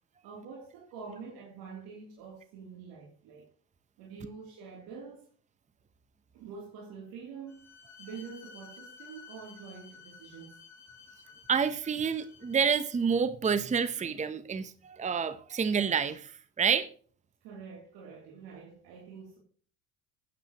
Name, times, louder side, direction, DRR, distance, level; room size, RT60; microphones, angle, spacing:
voice 1, 0.2-3.5 4.0-5.3 6.3-10.6 17.4-19.4, right 5 dB, 70° right, 3.2 m, -46 dB
Bowed string instrument, 7.5-13.0, left 5 dB, 50° left, 3.8 m, -53 dB
voice 2, 11.5-16.9, right 6 dB, 20° right, 0.8 m, -28 dB
12.0 x 9.1 x 3.0 m
supercardioid pair, 80°, 37 cm